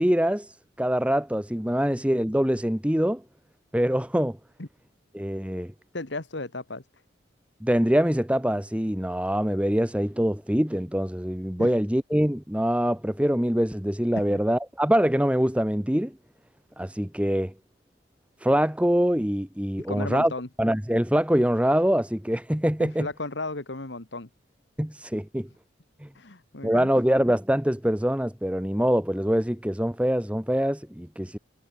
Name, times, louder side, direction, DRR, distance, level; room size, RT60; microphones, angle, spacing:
voice 1, 0.0-3.2 3.7-4.4 5.1-5.7 7.6-16.2 16.8-17.5 18.4-20.3 20.6-23.1 24.8-25.5 26.0-26.1 26.6-31.4, equal, 5° right, 1.1 m, -24 dB
voice 2, 5.9-6.9 11.6-11.7 14.3-14.4 19.9-20.5 22.8-24.3 26.1-26.9, left 2 dB, 60° left, 1.8 m, -34 dB
head